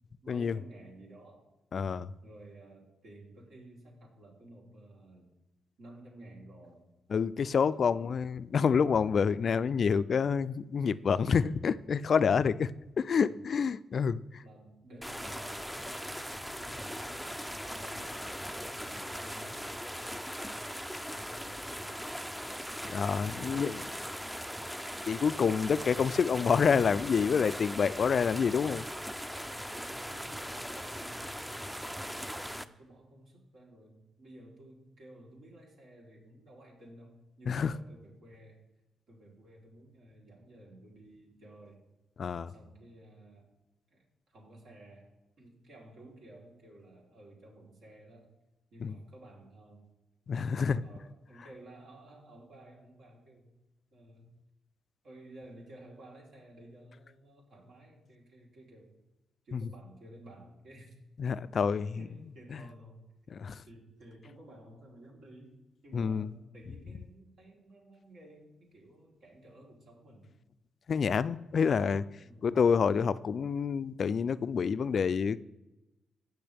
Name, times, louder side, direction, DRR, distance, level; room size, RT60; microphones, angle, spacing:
voice 1, 0.2-1.5 2.2-5.3 5.8-6.9 7.7-8.1 13.2-13.5 14.4-22.2 23.4-23.7 29.4-38.6 39.1-41.8 42.5-43.5 43.9-48.3 48.7-49.9 50.5-53.5 53.9-54.3 55.0-58.9 59.4-60.9 61.9-63.4 63.7-65.5 65.8-70.3 72.2-72.6, right 1 dB, 70° right, -2 dB, 3.6 m, -54 dB
voice 2, 1.7-2.1 7.1-12.7 13.0-14.4 22.9-23.7 25.1-28.8 37.5-37.7 42.2-42.5 48.8-48.9 50.3-50.8 59.5-59.6 61.2-62.0 63.3-63.6 65.9-66.3 70.9-72.0 72.4-75.4, left 6 dB, 55° left, 16 dB, 0.3 m, -28 dB
sound 1, 15.0-32.6, equal, 5° right, 0.5 m, -40 dB
17.0 x 6.3 x 3.5 m, 1.0 s
cardioid pair, 85°, 0 cm